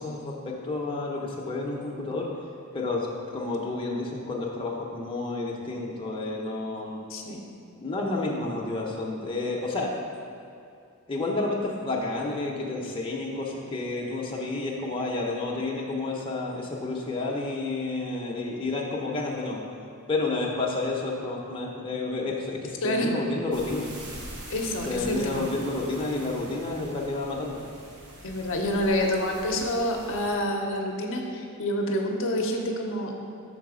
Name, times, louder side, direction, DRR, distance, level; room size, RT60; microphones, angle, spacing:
voice 1, 0.0-2.3 2.7-3.1 3.3-7.0 7.8-9.9 11.1-19.6 20.1-23.9 24.9-27.6, left 2 dB, 25° left, -3 dB, 0.6 m, -30 dB
voice 2, 7.1-7.4 22.8-23.1 24.5-25.5 28.2-33.2, left 1 dB, 60° left, 1 dB, 0.6 m, -28 dB
sound 1, 23.5-30.4, right 1 dB, 80° right, 1.1 m, -44 dB
5.8 x 4.0 x 4.8 m, 2.5 s
head